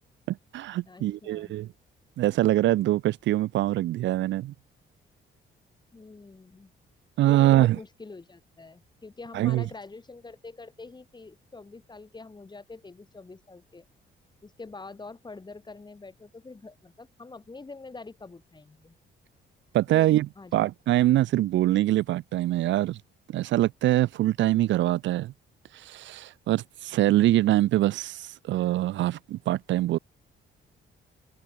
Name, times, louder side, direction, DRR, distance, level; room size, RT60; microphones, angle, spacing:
voice 1, 0.3-1.7 2.2-4.5 7.2-7.8 9.3-9.6 19.7-20.3 20.5-23.0 23.3-25.3 25.7-30.0, right 15 dB, 70° right, 0.5 m, -24 dB
voice 2, 0.9-1.6 5.9-6.7 7.3-13.8 14.4-19.0 19.9-20.7, left 3 dB, 20° left, 2.3 m, -45 dB
cardioid pair, 90°, 20 cm